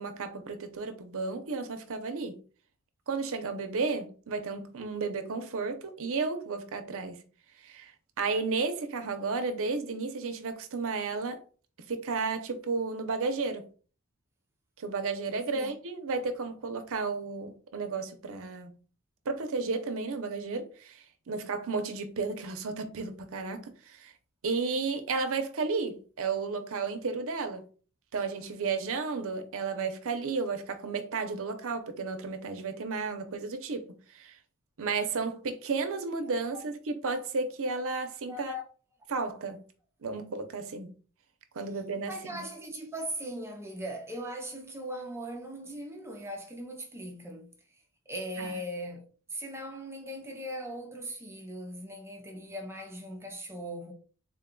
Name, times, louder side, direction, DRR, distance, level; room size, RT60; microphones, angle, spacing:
voice 1, 0.0-2.4 3.1-7.2 7.6-7.9 8.2-11.4 11.9-13.7 14.8-18.8 19.3-24.1 24.4-27.6 28.1-34.4 34.8-38.5 39.1-39.6 40.0-40.9 41.5-42.5 48.4-48.5, right 4 dB, 65° right, 0.6 m, -33 dB
voice 2, 38.3-38.6 42.0-49.0 49.3-53.9, equal, 10° right, 0.6 m, -39 dB
3.8 x 2.2 x 3.7 m
head